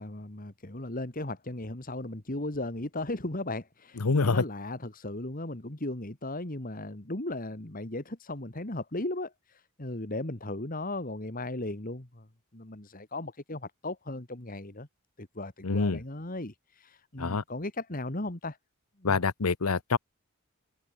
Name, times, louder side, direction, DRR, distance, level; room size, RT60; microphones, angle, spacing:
voice 1, 0.0-12.3 12.5-14.9 15.2-18.6 19.0-19.2, left 2 dB, 40° left, 2.1 m, -36 dB
voice 2, 4.0-4.4 15.6-16.0 17.2-17.4 19.0-20.0, left 4 dB, 80° left, 0.9 m, -26 dB
head